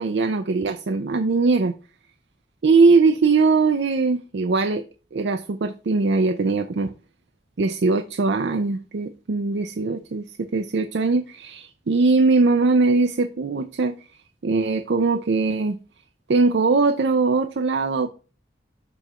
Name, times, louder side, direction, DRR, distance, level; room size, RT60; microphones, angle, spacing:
voice 1, 0.0-1.7 2.6-4.8 5.1-6.9 7.6-13.9 14.4-15.8 16.3-18.1, right 4 dB, 70° right, 0.5 m, -21 dB
6.9 x 2.9 x 5.5 m
head